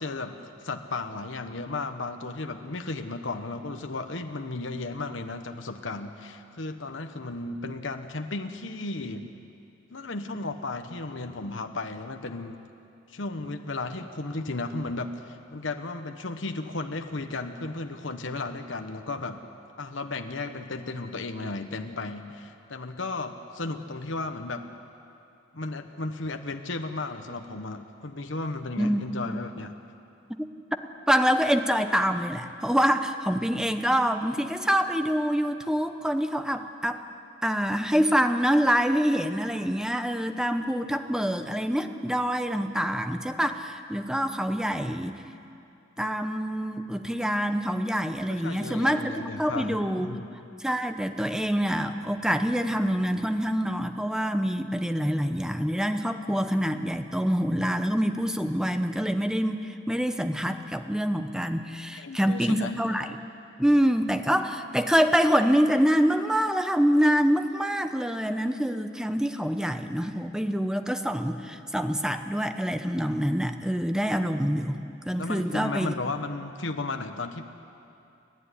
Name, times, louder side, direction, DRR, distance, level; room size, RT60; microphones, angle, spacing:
voice 1, 0.0-9.3 9.9-12.6 13.1-19.4 19.8-24.7 25.5-29.7 48.3-50.2 61.9-62.7 75.2-77.4, left 3 dB, 70° left, 6 dB, 1.2 m, -34 dB
voice 2, 28.8-29.3 31.1-37.0 37.4-45.2 46.0-50.1 50.6-63.1 63.6-74.8 75.0-76.0, equal, 5° right, 8 dB, 0.9 m, -26 dB
29.5 x 11.5 x 9.9 m, 2.7 s
head